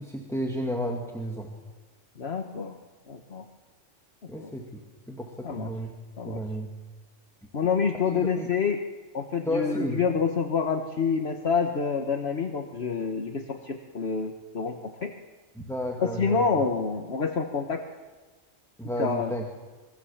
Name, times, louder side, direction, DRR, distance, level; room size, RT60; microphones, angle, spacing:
voice 1, 0.0-1.5 4.3-4.8 5.1-5.9 6.3-6.7 8.0-8.5 9.5-10.0 15.6-16.4 18.8-19.4, equal, ahead, 1 dB, 2.2 m, -32 dB
voice 2, 2.2-2.8 3.1-3.4 4.4-4.5 5.4-5.7 6.2-6.4 7.5-8.8 9.1-15.1 16.0-17.8 19.0-19.3, left 5 dB, 55° left, 4 dB, 1.5 m, -27 dB
27.0 x 23.0 x 7.3 m, 1.3 s
omnidirectional pair, 1.3 m